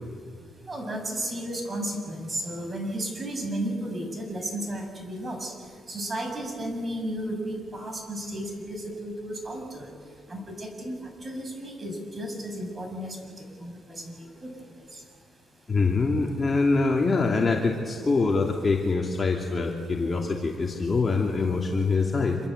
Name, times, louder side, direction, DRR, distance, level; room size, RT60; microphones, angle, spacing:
voice 1, 0.7-5.5 5.9-9.9 10.3-10.9 11.2-13.2 13.6-14.1 14.4-14.5, right 1 dB, 30° right, 3 dB, 7.4 m, -33 dB
voice 2, 15.7-22.4, left 3 dB, 30° left, 0 dB, 2.5 m, -24 dB
26.5 x 24.5 x 8.0 m, 2.1 s
cardioid pair, 90°, 0 cm